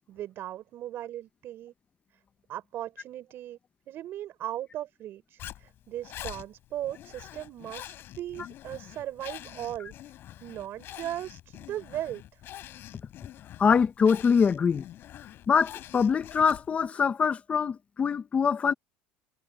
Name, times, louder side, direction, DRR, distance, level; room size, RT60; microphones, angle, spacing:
voice 1, 0.1-1.7 2.5-3.6 3.9-9.9 10.4-12.4, right 12 dB, 50° right, 5.6 m, -38 dB
Zipper (clothing), 5.4-16.9, left 13 dB, 50° left, 4.6 m, -45 dB
voice 2, 13.6-14.8 15.5-18.7, left 6 dB, 25° left, 1.2 m, -24 dB
cardioid pair, 130°, 5 cm